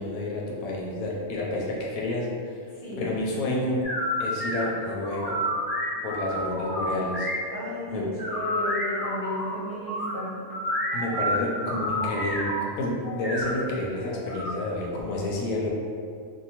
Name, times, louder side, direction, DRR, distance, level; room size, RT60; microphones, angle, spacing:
voice 1, 0.0-2.3 3.0-3.9 4.2-5.4 6.0-7.3 7.9-8.1 10.9-15.7, left 1 dB, 80° left, -2 dB, 1.0 m, -29 dB
voice 2, 2.7-3.1 7.5-10.3, left 1 dB, 50° left, -8 dB, 0.7 m, -34 dB
sound 1, 3.8-7.8 8.2-10.1 10.5-12.6 13.0-14.5, equal, 20° left, 0.7 m, -30 dB
2.7 x 2.1 x 2.8 m, 2.2 s
omnidirectional pair, 1.4 m